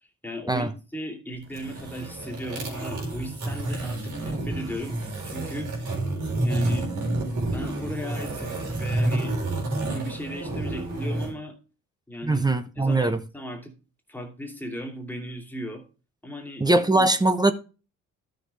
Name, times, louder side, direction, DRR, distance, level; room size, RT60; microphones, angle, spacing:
voice 1, 0.0-6.0 6.4-6.9 7.5-9.4 9.9-11.6 12.1-13.7 14.1-15.8 16.2-16.7 17.0-17.1, equal, 5° left, 2.7 m, -37 dB
sound 1, 1.4-11.3, right 2 dB, 75° right, 4.2 m, -29 dB
voice 2, 12.2-13.2 16.6-17.5, right 2 dB, 15° right, 0.9 m, -21 dB
12.5 x 6.6 x 3.3 m
cardioid pair, 90°, 30 cm